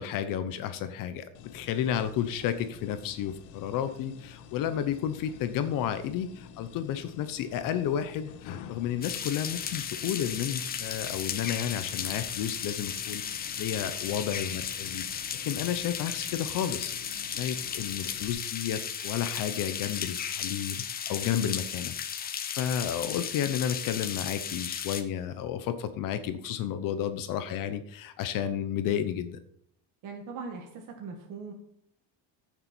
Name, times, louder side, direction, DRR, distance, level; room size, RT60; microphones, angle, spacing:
voice 1, 0.0-29.4, left 9 dB, 50° left, 10 dB, 0.9 m, -32 dB
sound 1, 1.3-18.3, left 7 dB, 85° left, 1.5 m, -49 dB
sound 2, 9.0-25.0, left 8 dB, 20° left, 0.7 m, -35 dB
voice 2, 30.0-31.5, right 4 dB, 45° right, 1 dB, 1.9 m, -40 dB
15.5 x 7.0 x 4.5 m, 0.71 s
cardioid pair, 180°, 44 cm